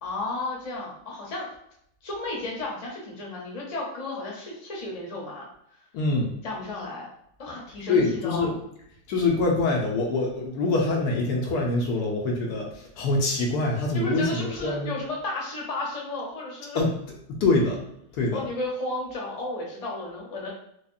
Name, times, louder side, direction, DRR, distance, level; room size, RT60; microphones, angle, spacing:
voice 1, 0.0-1.5 2.0-5.5 6.4-7.1 7.4-8.5 13.9-16.8 18.3-20.5, left 2 dB, 30° left, -3 dB, 0.8 m, -33 dB
voice 2, 5.9-6.3 7.9-8.5 9.1-14.9 16.7-16.9 17.3-17.8 18.1-18.4, left 3 dB, 75° left, -1 dB, 1.2 m, -24 dB
4.8 x 2.4 x 2.6 m, 0.73 s
omnidirectional pair, 1.8 m